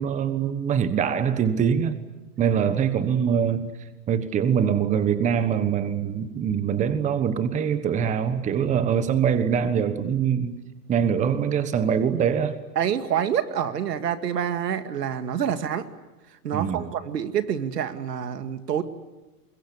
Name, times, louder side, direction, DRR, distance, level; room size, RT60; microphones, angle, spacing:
voice 1, 0.0-2.0 2.4-3.7 4.1-10.5 10.9-12.6 16.5-16.8, right 8 dB, 15° right, 1.2 m, -23 dB
voice 2, 12.8-15.9 16.4-18.8, right 9 dB, 90° right, 2.3 m, -27 dB
25.0 x 22.0 x 9.9 m
hypercardioid pair, 150°, 47 cm